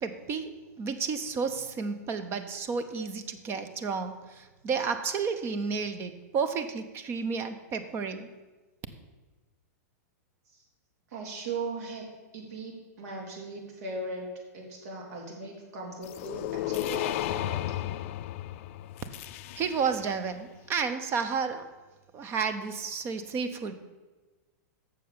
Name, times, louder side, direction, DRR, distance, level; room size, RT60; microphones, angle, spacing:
voice 1, 0.0-8.3 19.5-21.7 22.1-23.7, right 5 dB, 25° right, 9 dB, 0.7 m, -31 dB
voice 2, 11.1-12.0 12.3-14.2 14.5-17.8, right 3 dB, 70° right, -1 dB, 3.2 m, -38 dB
sound 1, 16.0-20.1, left 14 dB, 50° left, 0.3 m, -34 dB
7.6 x 6.7 x 6.7 m, 1.2 s
hypercardioid pair, 145°, 9 cm